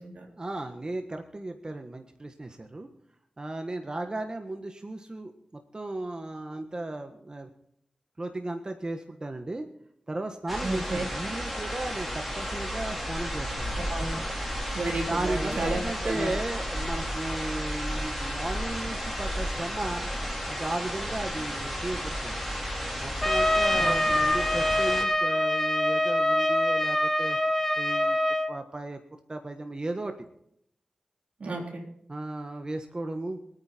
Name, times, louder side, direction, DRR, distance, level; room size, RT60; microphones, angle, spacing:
voice 1, 0.4-2.9 3.4-7.5 8.2-9.7 10.1-13.8 15.1-20.1 20.5-22.3 23.0-27.4 27.8-28.2 28.5-29.0 29.3-30.1 32.1-33.4, right 2 dB, 35° right, 6 dB, 1.4 m, -35 dB
sound 1, 10.5-25.0, equal, 5° right, 4.4 m, -33 dB
voice 2, 10.6-11.0 13.8-14.3 14.7-16.3 23.7-24.1 31.4-31.9, right 2 dB, 80° right, 2 dB, 3.7 m, -32 dB
Trumpet, 23.2-28.5, left 1 dB, 10° left, 1.8 m, -25 dB
24.5 x 9.4 x 4.5 m, 0.70 s
cardioid pair, 60°, 2 cm